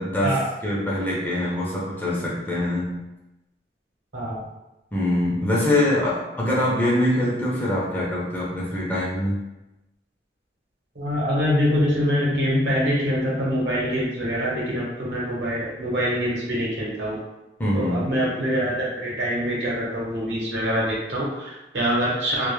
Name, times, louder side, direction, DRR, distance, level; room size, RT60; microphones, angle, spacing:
voice 1, 0.0-0.4 0.6-3.0 4.9-9.4 17.6-18.2, left 1 dB, 10° left, -6 dB, 0.4 m, -24 dB
voice 2, 10.9-17.2 17.7-22.5, equal, 80° right, -5 dB, 0.9 m, -24 dB
2.1 x 2.0 x 3.0 m, 0.97 s
head